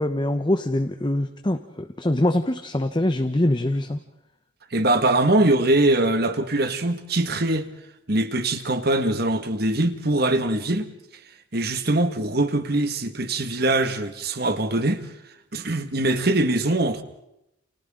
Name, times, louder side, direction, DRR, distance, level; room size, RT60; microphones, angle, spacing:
voice 1, 0.0-4.0, left 1 dB, 20° left, 0.8 m, -24 dB
voice 2, 4.7-7.7 8.1-10.9 11.5-15.0 15.5-17.0, right 2 dB, 50° right, 1.8 m, -22 dB
30.0 x 29.0 x 3.8 m
head